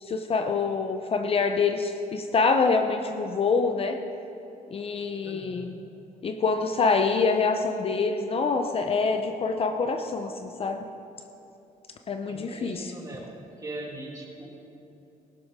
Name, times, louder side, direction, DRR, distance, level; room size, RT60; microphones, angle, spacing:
voice 1, 0.0-4.0 4.7-5.7 6.2-10.8 12.1-12.9, left 4 dB, 40° left, 6 dB, 0.7 m, -26 dB
voice 2, 5.2-5.8 12.3-14.5, right 1 dB, 25° right, -1 dB, 2.3 m, -40 dB
16.5 x 12.0 x 3.7 m, 2.9 s
cardioid pair, 120°, 15 cm